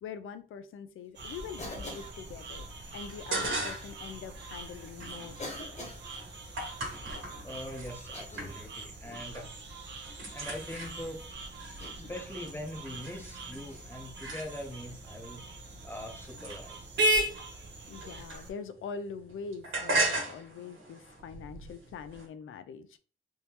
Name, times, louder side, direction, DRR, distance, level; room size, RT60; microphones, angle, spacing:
voice 1, 0.0-2.7 2.9-5.8 17.9-23.0, left 6 dB, 70° left, 0.4 m, -43 dB
sound 1, 1.1-18.5, right 1 dB, 55° right, 0.7 m, -38 dB
Cough, 1.6-2.2 3.4-3.6 4.5-4.6 5.4-6.0 8.0-8.6 9.0-9.3 10.4-10.8 11.8-12.2 13.6-13.9 16.1-16.3 18.0-18.2, left 2 dB, 30° left, 1.0 m, -45 dB
sound 2, 3.1-4.0 4.4-7.9 8.4-8.9 9.1-9.6 9.9-14.9 15.6-18.8 19.1-22.3, right 2 dB, 70° right, 1.5 m, -38 dB
voice 2, 7.4-9.5 10.3-11.2 12.1-15.4 15.8-17.0, left 1 dB, 10° left, 0.6 m, -42 dB
3.5 x 2.7 x 2.8 m
wide cardioid pair, 160°, 21 cm